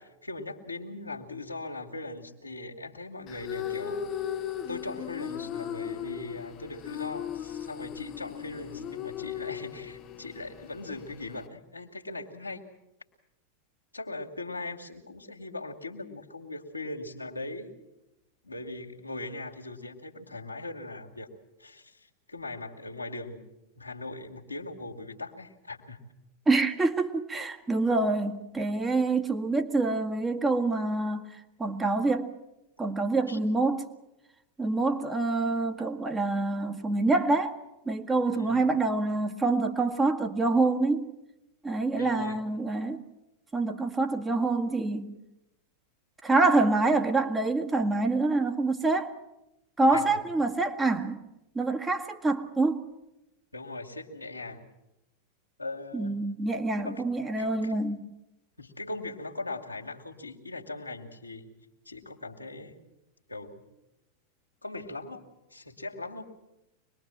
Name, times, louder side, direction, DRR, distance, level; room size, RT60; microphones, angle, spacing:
voice 1, 0.0-4.1 4.7-12.6 13.9-17.7 18.4-21.3 21.6-23.5 23.8-26.0 33.3-33.4 38.3-38.7 42.0-42.4 49.9-50.0 53.5-54.7 55.6-56.1 56.8-57.0 57.4-57.7 58.6-61.5 61.9-62.8 63.3-63.6 64.6-66.3, left 2 dB, 85° left, 0 dB, 2.4 m, -40 dB
sound 1, 3.3-11.5, left 10 dB, 35° left, 1.0 m, -37 dB
voice 2, 26.5-31.2 31.6-32.3 32.8-33.9 34.6-37.6 37.9-41.1 41.6-43.0 43.5-45.1 46.2-49.1 49.8-51.2 51.6-52.9 55.9-58.1, right 3 dB, 15° right, 5 dB, 1.7 m, -26 dB
24.5 x 21.0 x 7.6 m, 0.92 s
figure-of-eight pair, 90°, 0 cm